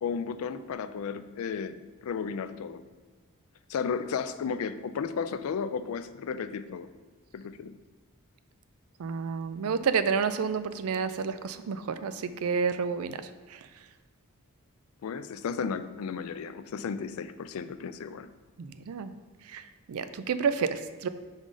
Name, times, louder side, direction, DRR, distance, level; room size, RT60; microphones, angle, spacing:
voice 1, 0.0-1.8 2.0-2.8 3.7-6.9 7.3-7.7 15.0-18.3, left 6 dB, 70° left, 12 dB, 0.3 m, -34 dB
voice 2, 9.0-13.2 13.5-13.6 18.6-19.1 19.5-19.6 19.9-21.1, right 6 dB, 70° right, 12 dB, 0.4 m, -30 dB
5.3 x 3.8 x 4.8 m, 1.3 s
head